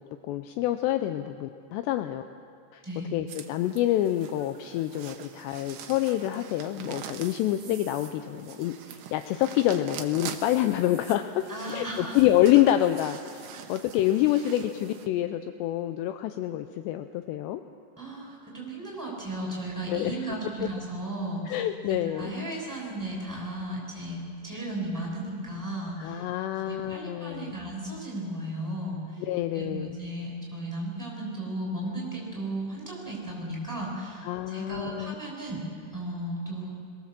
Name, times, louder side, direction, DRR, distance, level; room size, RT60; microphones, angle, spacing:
voice 1, 0.3-2.2 2.7-2.8 3.1-17.6 19.9-20.3 20.6-20.7 21.5-22.4 26.0-27.6 29.3-29.9 34.2-35.2, left 13 dB, 80° left, 9 dB, 2.7 m, -27 dB
voice 2, 2.8-3.1 11.5-12.2 13.5-13.7 18.0-21.6 21.9-26.2 26.5-29.2 29.5-35.6 35.9-36.7, right 1 dB, 5° right, -4 dB, 6.3 m, -35 dB
sound 1, 3.3-15.1, right 9 dB, 75° right, 1.8 m, -44 dB
22.0 x 19.5 x 7.5 m, 2.4 s
omnidirectional pair, 5.2 m